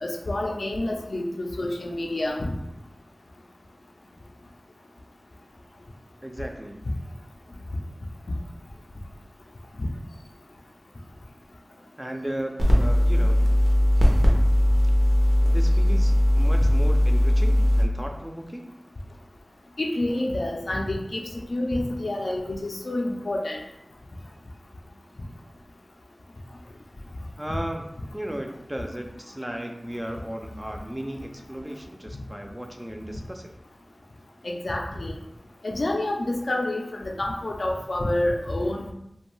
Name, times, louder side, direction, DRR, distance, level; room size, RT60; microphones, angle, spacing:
voice 1, 0.0-2.5 9.8-9.9 19.8-21.2 21.5-23.6 34.4-35.1 35.6-38.9, left 1 dB, 70° left, 0 dB, 0.3 m, -28 dB
voice 2, 6.2-6.9 12.0-13.5 15.4-18.7 27.4-33.6, right 1 dB, 15° right, 3 dB, 0.3 m, -35 dB
sound 1, 12.6-17.8, left 1 dB, 85° right, 0.5 m, -19 dB
2.5 x 2.2 x 3.0 m, 0.81 s
wide cardioid pair, 55°, 0 cm